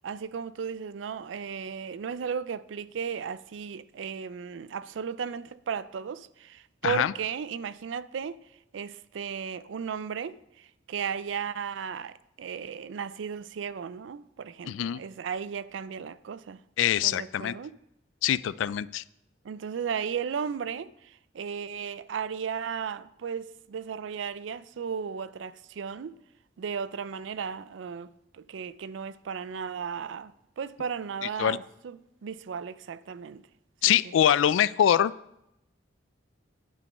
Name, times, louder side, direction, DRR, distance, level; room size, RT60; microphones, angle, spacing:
voice 1, 0.0-8.4 8.7-16.6 17.0-17.7 19.4-26.1 26.6-33.4 33.9-34.1, right 7 dB, 75° right, 0.4 m, -35 dB
voice 2, 14.7-15.0 16.8-17.5 18.2-19.0 31.4-31.6 33.8-35.1, left 10 dB, 90° left, 0.3 m, -24 dB
9.7 x 5.3 x 6.6 m
head